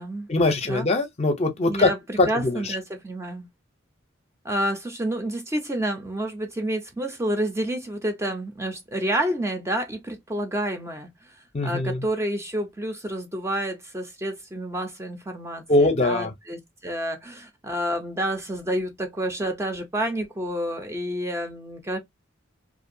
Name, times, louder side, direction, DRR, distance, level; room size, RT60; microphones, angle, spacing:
voice 1, 0.3-1.9 2.2-2.7 11.5-12.0 15.7-16.3, left 2 dB, 35° left, 0.5 m, -22 dB
voice 2, 1.7-3.5 4.4-11.3 11.6-22.0, right 1 dB, 15° right, 0.4 m, -29 dB
2.5 x 2.2 x 2.6 m
head